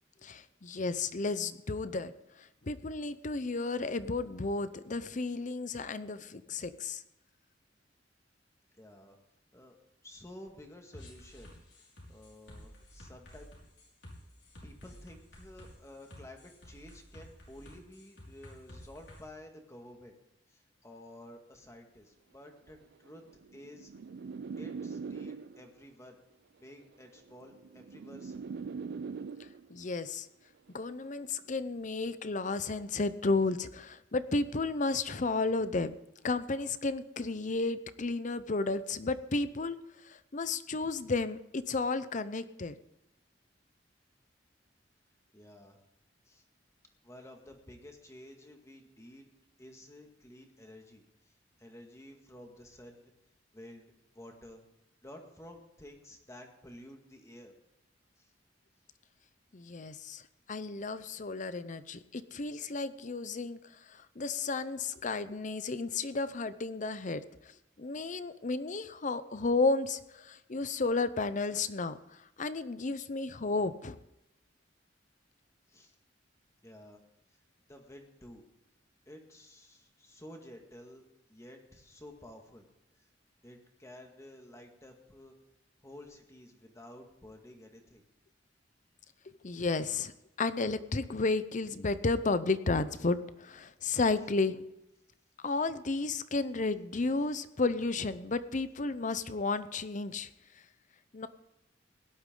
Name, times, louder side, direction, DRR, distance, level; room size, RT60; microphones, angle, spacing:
voice 1, 0.2-7.0 29.4-30.3 30.7-36.0 36.2-39.8 40.0-42.7 59.5-60.2 60.5-63.6 63.9-67.5 67.8-74.0 89.4-90.1 90.4-94.6 95.4-100.3 101.1-101.3, left 3 dB, 45° left, 13 dB, 0.7 m, -33 dB
voice 2, 8.8-9.2 9.5-9.8 10.0-11.5 12.1-13.5 14.6-20.1 20.5-23.2 23.5-23.9 24.6-26.2 26.6-28.6 31.7-31.8 45.3-45.8 46.3-46.4 47.0-49.3 49.6-51.0 51.6-53.1 53.5-54.6 55.0-57.5 58.2-58.3 75.7-75.9 76.6-77.0 77.7-78.4 79.1-82.7 83.4-85.4 85.8-88.0, left 1 dB, 15° left, 3 dB, 2.0 m, -52 dB
sound 1, 10.9-19.2, left 1 dB, 70° left, 5.0 m, -52 dB
sound 2, 22.8-25.8 26.8-29.8 30.8-31.2, right 5 dB, 60° right, 0.4 m, -42 dB
17.5 x 11.5 x 3.9 m, 0.89 s
head